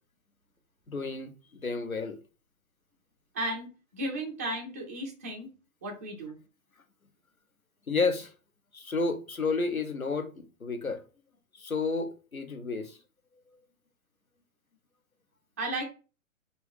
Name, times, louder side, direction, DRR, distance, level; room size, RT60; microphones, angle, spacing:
voice 1, 0.9-1.3 1.6-2.2 7.9-8.3 8.7-11.0 11.6-13.0, left 4 dB, 90° left, 0.9 m, -31 dB
voice 2, 3.3-5.5 5.8-6.4 15.6-15.8, right 1 dB, 15° right, 0.3 m, -34 dB
4.3 x 3.5 x 3.4 m
figure-of-eight pair, 115°, 41 cm